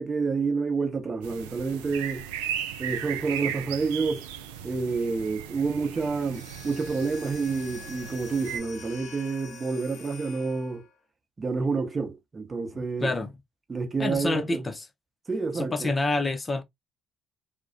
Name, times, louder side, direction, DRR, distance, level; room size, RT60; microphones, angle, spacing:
voice 1, 0.0-2.3 2.8-4.2 4.6-10.8 11.4-13.1 13.7-14.6 15.3-15.9, right 4 dB, 30° right, 0.8 m, -29 dB
sound 1, 1.2-8.6, right 9 dB, 75° right, 0.3 m, -37 dB
sound 2, 6.2-11.0, left 5 dB, 65° left, 0.6 m, -46 dB
voice 2, 12.7-13.3 14.0-14.9 15.5-16.6, left 2 dB, 25° left, 0.5 m, -28 dB
2.3 x 2.1 x 2.6 m
figure-of-eight pair, 50°, 0 cm